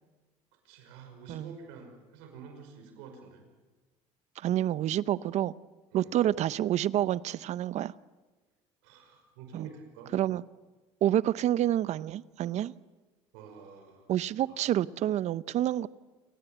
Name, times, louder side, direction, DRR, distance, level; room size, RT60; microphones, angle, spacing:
voice 1, 0.6-3.4 5.9-6.1 8.8-10.2 13.3-14.1 14.5-14.7, right 5 dB, 90° right, 5 dB, 5.3 m, -49 dB
voice 2, 4.4-5.5 5.9-7.9 9.5-9.7 10.1-10.4 11.0-12.7 14.1-15.9, right 12 dB, 60° right, 18 dB, 0.7 m, -28 dB
28.5 x 18.0 x 8.0 m, 1.3 s
supercardioid pair, 90°, 13 cm